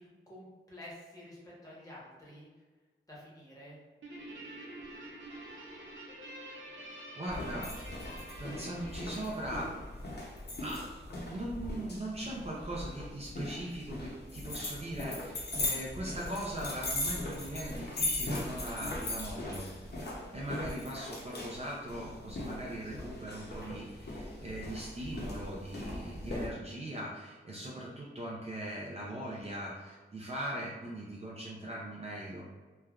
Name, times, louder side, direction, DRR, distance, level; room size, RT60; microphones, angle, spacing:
voice 1, 0.0-2.5 3.1-3.8 20.2-20.5, left 1 dB, 15° left, -7 dB, 0.9 m, -50 dB
Guitar, 4.0-10.7, right 1 dB, 75° right, 0.6 m, -48 dB
voice 2, 7.1-7.8 8.4-9.8 10.6-10.9 11.3-19.7 20.3-32.5, right 1 dB, 30° right, -5 dB, 0.4 m, -40 dB
sound 1, 7.3-26.5, left 1 dB, 55° left, 0.7 m, -39 dB
3.2 x 2.2 x 2.3 m, 1.3 s
wide cardioid pair, 135°, 20 cm